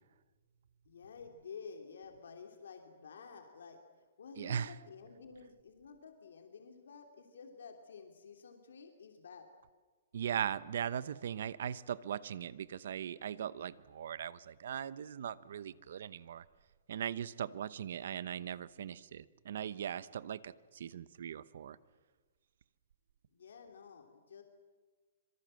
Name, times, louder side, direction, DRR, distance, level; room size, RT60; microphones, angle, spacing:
voice 1, 0.9-3.8 4.2-9.5 23.3-24.4, left 5 dB, 90° left, 4 dB, 3.1 m, -51 dB
voice 2, 4.4-4.7 10.1-16.4 16.9-21.8, right 9 dB, 60° right, 17 dB, 0.9 m, -39 dB
26.0 x 23.5 x 7.7 m, 1.4 s
hypercardioid pair, 175°, 0 cm